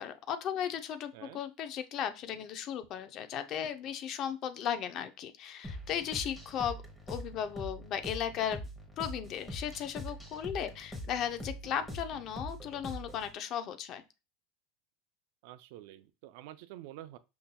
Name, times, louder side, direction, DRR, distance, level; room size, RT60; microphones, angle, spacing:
voice 1, 0.0-6.8 7.1-8.6 9.0-14.0, left 9 dB, 45° left, 0.5 m, -36 dB
sound 1, 5.6-13.3, equal, 10° left, 1.0 m, -43 dB
voice 2, 15.4-17.2, right 14 dB, 70° right, 0.4 m, -48 dB
5.5 x 2.6 x 2.2 m
supercardioid pair, 125°, 0 cm